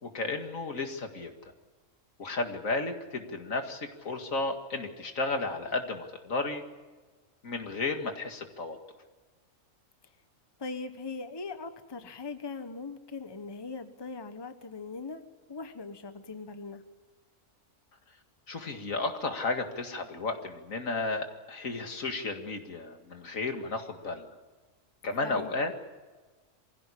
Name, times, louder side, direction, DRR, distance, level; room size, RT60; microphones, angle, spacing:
voice 1, 0.0-1.3 2.2-6.6 7.4-8.8 18.5-24.3 25.0-25.7, left 3 dB, 90° left, 5 dB, 2.5 m, -33 dB
voice 2, 10.6-15.2 15.5-16.8 25.2-25.5, left 4 dB, 20° left, 9 dB, 1.1 m, -40 dB
24.0 x 16.0 x 10.0 m, 1.3 s
omnidirectional pair, 1.4 m